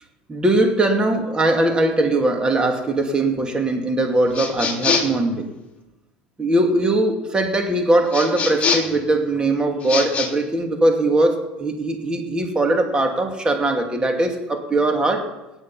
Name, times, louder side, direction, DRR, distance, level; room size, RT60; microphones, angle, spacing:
voice 1, 0.3-5.5 6.4-15.3, right 2 dB, 20° right, 4 dB, 2.5 m, -20 dB
sound 1, 4.3-5.2 8.1-9.0 9.8-10.3, left 5 dB, 30° left, 3.1 m, -23 dB
17.5 x 8.3 x 5.6 m, 1.0 s
hypercardioid pair, 90°, 4 cm